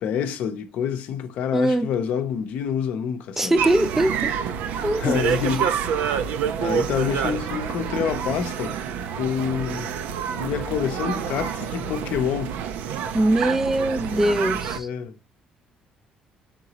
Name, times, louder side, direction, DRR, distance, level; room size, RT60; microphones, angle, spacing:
voice 1, 0.0-3.5 5.0-5.7 6.6-8.8 9.2-9.9 10.3-12.5 14.8-15.3, left 8 dB, 75° left, 0.6 m, -27 dB
voice 2, 1.5-1.9 3.4-4.4 4.8-5.2 13.1-14.9, right 1 dB, 10° right, 0.4 m, -22 dB
sound 1, 3.6-14.8, right 8 dB, 85° right, 0.5 m, -28 dB
3.9 x 3.7 x 2.9 m
cardioid pair, 105°, 3 cm